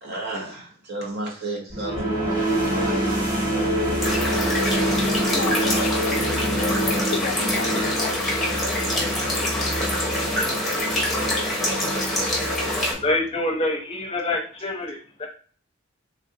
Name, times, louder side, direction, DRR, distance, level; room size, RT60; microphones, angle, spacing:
voice 1, 0.0-4.6 10.4-12.7, right 2 dB, 50° right, -1 dB, 1.0 m, -36 dB
sound 1, 1.7-13.3, right 1 dB, 20° right, 1.1 m, -26 dB
sound 2, 4.0-12.9, left 1 dB, ahead, 1.0 m, -25 dB
voice 2, 5.3-8.2, left 6 dB, 55° left, 7 dB, 0.3 m, -33 dB
voice 3, 13.0-15.3, left 2 dB, 30° left, 1 dB, 0.7 m, -26 dB
3.3 x 2.5 x 2.7 m, 0.43 s
head